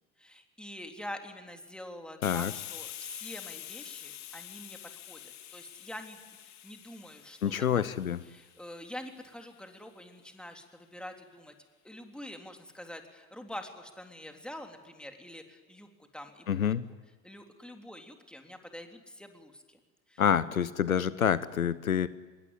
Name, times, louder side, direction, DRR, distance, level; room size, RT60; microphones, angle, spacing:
voice 1, 0.2-4.8 5.1-7.9 8.3-11.5 11.8-16.7 17.2-19.8 20.1-20.2, left 1 dB, ahead, 4 dB, 3.4 m, -46 dB
Hiss, 2.2-9.6, left 12 dB, 40° left, 2.8 m, -46 dB
voice 2, 7.4-8.2 16.5-16.8 20.2-22.1, left 8 dB, 80° left, 18 dB, 0.9 m, -27 dB
26.0 x 21.5 x 9.9 m, 1.3 s
figure-of-eight pair, 75°, 41 cm